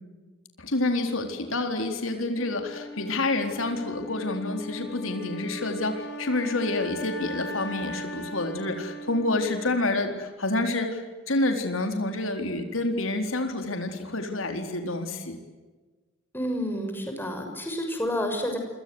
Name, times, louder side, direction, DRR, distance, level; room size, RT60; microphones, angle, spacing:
voice 1, 0.6-15.4, left 2 dB, 80° left, 5 dB, 4.1 m, -28 dB
Wind instrument woodwind instrument, 2.3-10.4, equal, 60° left, 3.7 m, -39 dB
voice 2, 16.3-18.6, equal, 10° left, 4 dB, 6.5 m, -29 dB
28.5 x 26.0 x 8.0 m, 1.3 s
head